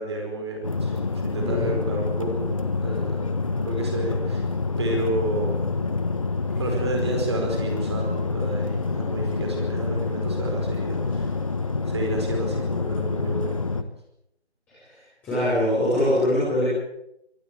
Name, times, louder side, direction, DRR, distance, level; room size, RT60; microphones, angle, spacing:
voice 1, 0.0-3.3 3.6-4.4 4.8-5.6 6.6-11.3 11.9-13.6, right 2 dB, 25° right, 2 dB, 4.9 m, -31 dB
sound 1, 0.6-13.8, left 4 dB, 30° left, 1.3 m, -27 dB
voice 2, 1.3-1.7 14.8-14.9 15.2-16.6, left 1 dB, 5° left, -13 dB, 6.2 m, -23 dB
24.5 x 15.0 x 8.5 m, 0.79 s
figure-of-eight pair, 170°, 34 cm